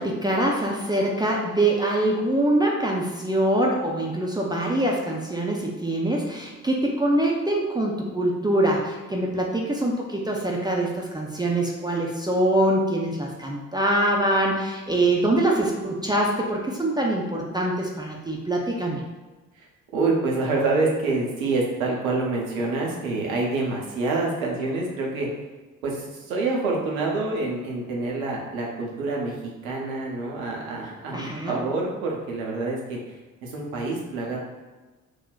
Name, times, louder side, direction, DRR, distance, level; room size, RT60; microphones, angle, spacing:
voice 1, 0.0-19.0 31.1-31.6, right 1 dB, 10° right, -3 dB, 0.5 m, -24 dB
voice 2, 19.9-25.3 25.8-29.3 29.6-33.0 33.4-34.4, right 3 dB, 80° right, -2 dB, 0.7 m, -26 dB
2.5 x 2.1 x 3.9 m, 1.3 s
figure-of-eight pair, 45°, 41 cm